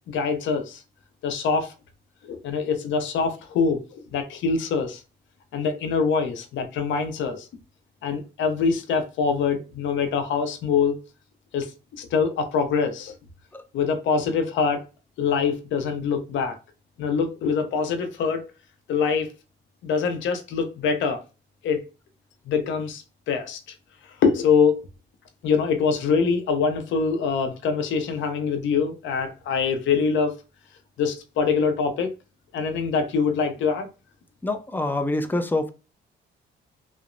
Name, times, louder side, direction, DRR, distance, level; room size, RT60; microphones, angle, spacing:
voice 1, 0.1-0.8 1.2-1.7 2.2-5.0 5.5-7.5 8.0-11.0 11.5-13.1 13.7-14.8 15.2-16.6 17.0-18.5 18.9-19.3 19.8-21.2 21.6-21.8 22.5-23.6 24.2-24.8 25.4-30.4 31.0-32.1 32.5-33.9, left 5 dB, 70° left, 0.6 m, -24 dB
voice 2, 34.4-35.7, left 2 dB, 10° left, 0.4 m, -26 dB
2.9 x 2.0 x 2.5 m
cardioid pair, 90°, 20 cm